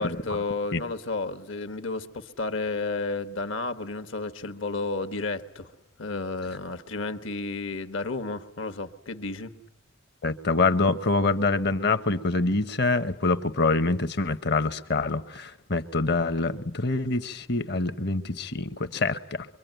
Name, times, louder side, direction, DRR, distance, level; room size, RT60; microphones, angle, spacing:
voice 1, 0.0-5.7 6.0-9.5, left 3 dB, 70° left, 1.3 m, -32 dB
voice 2, 10.2-19.5, left 3 dB, 55° left, 1.0 m, -25 dB
24.0 x 24.0 x 9.2 m
head